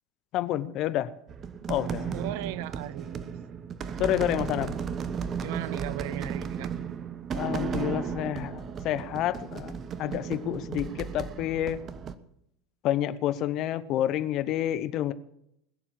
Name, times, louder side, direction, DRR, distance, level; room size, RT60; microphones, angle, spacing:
voice 1, 0.3-1.1 1.7-2.2 4.0-4.8 7.3-11.8 12.8-15.1, left 12 dB, 50° left, 15 dB, 0.9 m, -29 dB
sound 1, 1.3-12.2, right 7 dB, 35° right, 1.2 m, -35 dB
voice 2, 2.1-3.3 5.4-6.7, right 13 dB, 65° right, 17 dB, 0.9 m, -37 dB
21.0 x 7.2 x 8.8 m, 0.75 s
hypercardioid pair, 75°, 0 cm